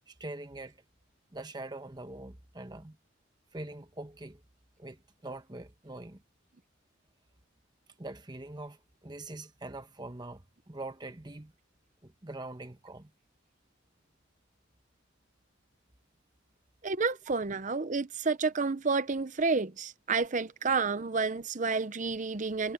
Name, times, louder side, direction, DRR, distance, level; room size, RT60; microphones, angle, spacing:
voice 1, 0.1-0.8 1.3-3.0 3.5-4.4 4.8-6.2 8.0-11.5 12.0-13.1, right 2 dB, 20° right, 1.1 m, -43 dB
voice 2, 16.8-22.7, right 4 dB, 40° right, 0.7 m, -30 dB
head